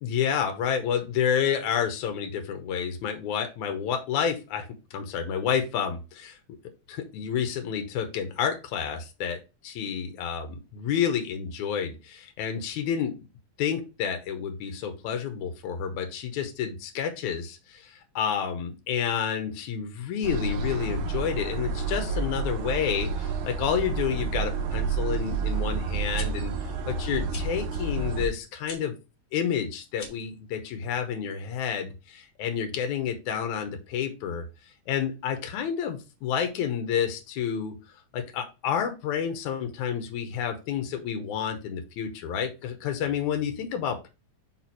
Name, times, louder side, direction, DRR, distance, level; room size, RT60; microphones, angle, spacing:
voice 1, 0.0-6.4 6.9-9.4 9.6-13.1 13.6-26.5 26.9-28.9 29.3-34.5 34.9-37.7 38.1-44.1, left 8 dB, 85° left, 6 dB, 2.3 m, -29 dB
sound 1, 20.2-28.3, right 5 dB, 75° right, 1.2 m, -30 dB
sound 2, 26.1-26.3 27.3-27.5 28.6-28.8 29.9-30.3, left 4 dB, 50° left, 1.5 m, -41 dB
4.9 x 4.3 x 4.5 m, 0.29 s
omnidirectional pair, 3.3 m